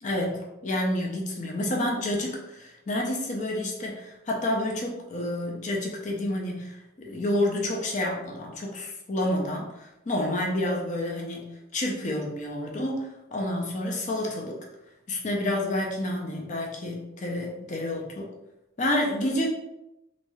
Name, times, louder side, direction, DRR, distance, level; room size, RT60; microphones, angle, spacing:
voice 1, 0.0-14.6 15.1-18.3 18.8-19.5, left 1 dB, 40° left, -1 dB, 0.4 m, -29 dB
3.0 x 2.5 x 2.3 m, 0.92 s
head